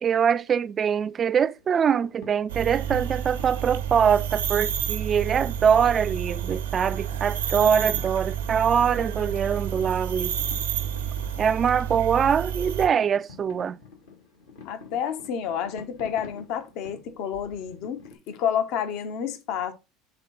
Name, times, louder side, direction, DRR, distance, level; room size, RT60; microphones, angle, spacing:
voice 1, 0.0-10.4 11.4-13.8, right 7 dB, 35° right, 0.4 m, -23 dB
sound 1, 1.6-18.1, left 4 dB, 80° left, 2.2 m, -50 dB
sound 2, 2.5-12.9, right 9 dB, 85° right, 1.1 m, -30 dB
voice 2, 14.6-19.7, left 8 dB, 60° left, 0.9 m, -30 dB
7.9 x 3.7 x 3.9 m
hypercardioid pair, 75°, 0 cm